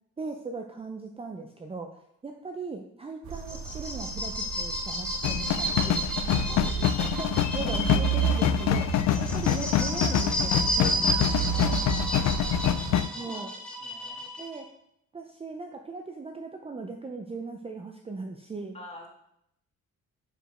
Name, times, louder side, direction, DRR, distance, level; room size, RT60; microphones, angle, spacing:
voice 1, 0.2-6.0 7.1-11.5 13.1-13.5 14.4-14.6 15.1-18.8, right 3 dB, 20° right, 3 dB, 0.5 m, -38 dB
sound 1, 3.2-13.0, right 10 dB, 70° right, 0.6 m, -33 dB
sound 2, 3.3-14.6, right 1 dB, 5° left, 2.1 m, -32 dB
sound 3, 5.2-13.1, left 11 dB, 65° left, 0.4 m, -26 dB
voice 2, 6.3-7.2 9.1-9.3 11.5-13.4 13.8-14.3 18.7-19.1, left 1 dB, 20° left, -1 dB, 1.9 m, -47 dB
5.0 x 5.0 x 5.0 m, 0.77 s
cardioid pair, 90°, 30 cm